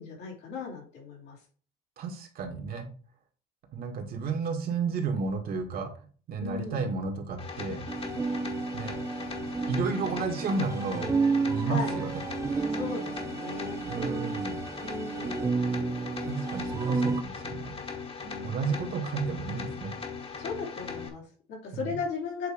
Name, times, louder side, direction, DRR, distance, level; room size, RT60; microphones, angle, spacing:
voice 1, 0.0-1.4 6.4-6.9 11.7-12.0 12.7-13.8 14.8-15.4 18.2-18.6 20.3-22.5, left 5 dB, 85° left, -2 dB, 3.4 m, -37 dB
voice 2, 2.0-2.9 3.7-5.9 6.3-7.9 8.7-9.0 9.7-11.1 11.5-12.2 13.8-14.6 16.2-17.7 18.4-20.0 21.7-22.0, right 4 dB, 60° right, 3 dB, 1.8 m, -32 dB
sound 1, 7.4-21.1, left 5 dB, 35° left, 1.4 m, -39 dB
sound 2, 7.9-17.2, right 4 dB, 15° right, 0.3 m, -31 dB
8.0 x 3.2 x 5.0 m, 0.41 s
cardioid pair, 110°, 17 cm